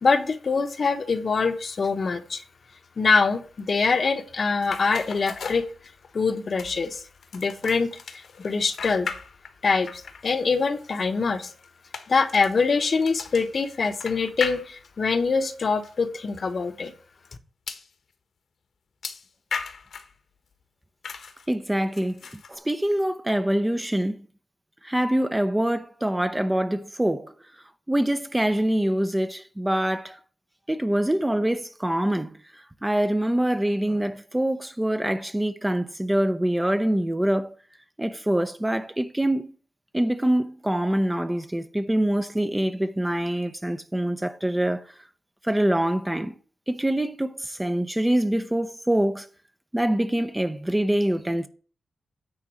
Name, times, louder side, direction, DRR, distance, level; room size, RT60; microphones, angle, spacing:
voice 1, 0.0-2.4 3.0-5.7 6.1-6.9 7.3-7.9 8.4-9.1 9.6-11.5 12.1-16.9, left 4 dB, 45° left, 1.0 m, -24 dB
sound 1, 4.6-6.2 6.6-9.6 9.9-15.1 15.8-15.9 16.3-16.4 17.7-17.9 19.0-20.2 21.0-21.5 21.9-22.6, left 5 dB, 70° left, 1.4 m, -37 dB
voice 2, 21.5-22.2 22.5-24.2 24.8-27.3 27.9-30.2 30.7-32.4 32.8-37.5 38.0-39.5 39.9-44.9 45.4-46.3 46.7-49.3 49.7-51.5, right 1 dB, 10° right, 0.6 m, -25 dB
9.6 x 3.9 x 7.4 m
wide cardioid pair, 140°, 0 cm